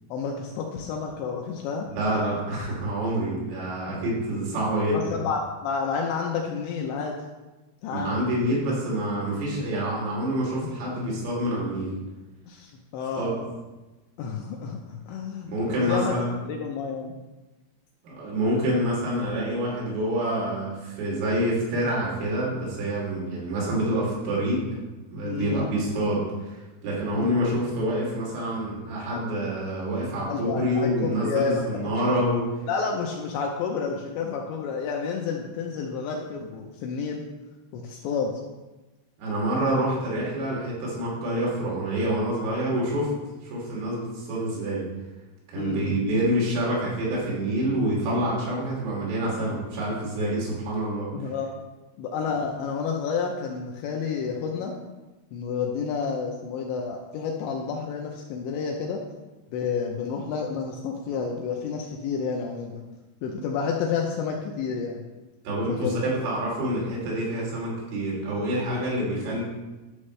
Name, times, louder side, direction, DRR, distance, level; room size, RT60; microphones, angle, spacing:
voice 1, 0.1-1.9 4.9-7.1 7.8-8.2 9.8-9.9 10.6-11.2 12.5-13.5 14.2-16.1 16.5-17.1 25.2-25.8 27.1-27.4 30.3-31.7 32.7-37.2 37.7-38.3 45.6-46.0 51.1-51.5 52.0-54.7 55.3-59.0 59.5-62.8 63.2-65.0 65.7-66.0, left 5 dB, 80° left, 1 dB, 2.6 m, -30 dB
voice 2, 1.8-5.1 7.9-11.9 13.2-13.3 15.5-16.3 18.0-24.6 25.1-32.5 39.2-43.1 43.4-44.9 45.5-51.1 65.5-69.4, right 1 dB, 80° right, -5 dB, 5.4 m, -27 dB
12.5 x 6.3 x 3.2 m, 1.1 s
omnidirectional pair, 5.8 m